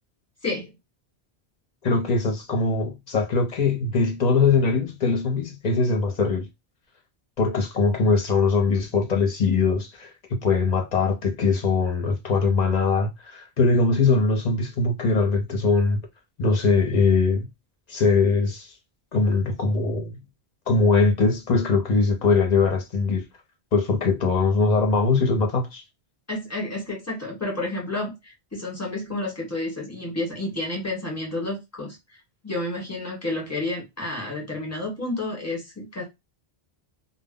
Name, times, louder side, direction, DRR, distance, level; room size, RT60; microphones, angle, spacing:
voice 1, 0.4-0.7 26.3-32.0 32.4-36.0, left 2 dB, 15° left, 0.9 m, -30 dB
voice 2, 1.8-6.5 7.4-16.0 16.4-17.5 17.9-18.7 19.1-20.2 20.7-23.2 23.7-25.8, left 4 dB, 50° left, 0.6 m, -21 dB
2.0 x 2.0 x 3.6 m
omnidirectional pair, 1.1 m